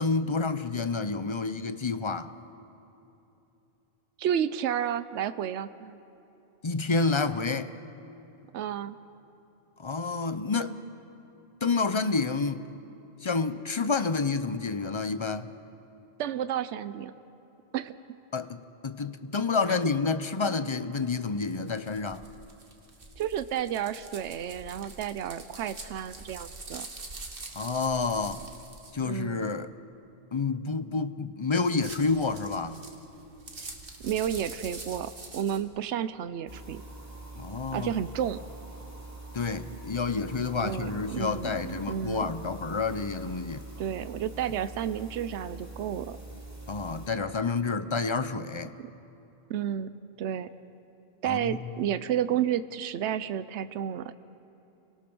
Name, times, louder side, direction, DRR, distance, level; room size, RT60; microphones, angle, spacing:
voice 1, 0.0-2.3 6.6-7.7 9.8-10.8 11.6-12.6 13.2-15.5 18.3-22.2 27.5-28.5 28.9-29.7 30.3-32.8 37.4-37.9 39.3-43.7 46.7-48.7 51.2-51.6, left 4 dB, 30° left, 0.6 m, -29 dB
voice 2, 4.2-6.0 8.5-8.9 16.2-17.1 17.7-18.0 23.2-26.9 29.0-29.5 34.0-36.8 37.7-38.4 40.6-42.2 43.8-46.2 49.5-49.9 50.2-50.5 51.2-54.1, right 9 dB, 80° right, 1.0 m, -31 dB
sound 1, 21.5-28.9 31.6-35.6, right 3 dB, 55° right, 2.0 m, -45 dB
sound 2, 36.5-47.1, right 2 dB, 15° right, 2.7 m, -44 dB
28.5 x 18.5 x 6.2 m
omnidirectional pair, 1.2 m